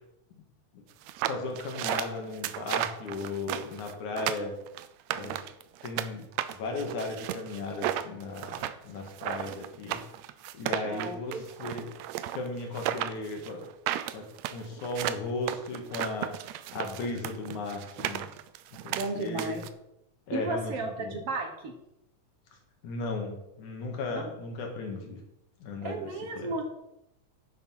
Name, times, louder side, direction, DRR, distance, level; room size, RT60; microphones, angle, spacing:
sound 1, 1.0-6.1 6.4-19.7, right 12 dB, 80° right, 1.7 m, -34 dB
voice 1, 1.3-4.5 5.1-5.4 5.8-10.0 10.5-11.9 12.3-13.7 14.1-16.3 16.7-18.3 18.7-19.6 20.3-21.2 22.8-25.2 25.6-26.1 26.4-26.5, left 3 dB, 70° left, 2 dB, 3.2 m, -36 dB
voice 2, 10.8-11.4 18.9-19.6 20.3-21.7 24.1-24.2 25.8-26.6, right 3 dB, 60° right, 4 dB, 1.9 m, -34 dB
10.0 x 7.0 x 5.6 m, 0.86 s
omnidirectional pair, 3.5 m